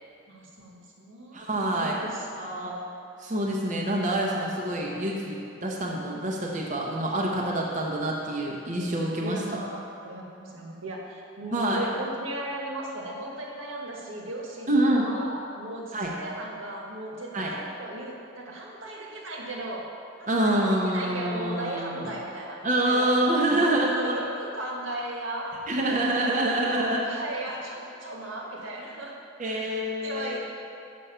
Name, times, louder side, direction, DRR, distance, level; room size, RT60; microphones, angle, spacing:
voice 1, 0.3-2.5 5.8-5.9 9.2-19.9 20.2-23.1 23.5-26.3 26.7-29.1 29.4-30.4, right 1 dB, 75° right, -2 dB, 1.4 m, -37 dB
voice 2, 1.3-2.0 2.4-2.8 3.2-9.6 11.5-11.9 14.7-15.1 15.9-16.1 17.3-17.5 20.3-22.1 22.6-24.2 25.7-27.1 29.4-30.4, right 1 dB, 40° right, -2 dB, 0.8 m, -26 dB
7.1 x 6.3 x 5.5 m, 2.6 s
head